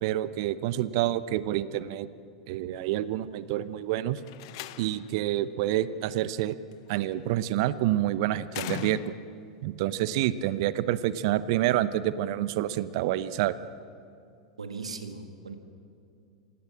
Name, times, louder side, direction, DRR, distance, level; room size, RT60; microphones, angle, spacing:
voice 1, 0.0-2.1 2.5-4.2 4.8-6.6 6.9-9.0 9.6-13.5, right 13 dB, 55° right, 15 dB, 0.8 m, -28 dB
Slam, 4.2-5.2 6.7-7.1 8.5-9.5, left 16 dB, 55° left, 0.7 m, -39 dB
voice 2, 14.6-15.5, right 4 dB, 85° right, 7 dB, 1.9 m, -38 dB
26.5 x 17.5 x 7.5 m, 2.4 s
figure-of-eight pair, 90°, 3 cm